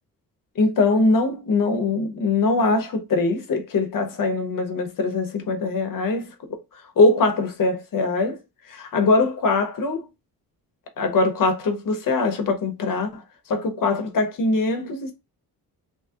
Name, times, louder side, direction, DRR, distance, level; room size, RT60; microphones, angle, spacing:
voice 1, 0.6-6.6 7.0-8.4 8.7-10.1 11.0-13.2 13.5-15.1, left 3 dB, 60° left, 0.9 m, -22 dB
3.0 x 2.3 x 2.7 m
cardioid pair, 95°, 36 cm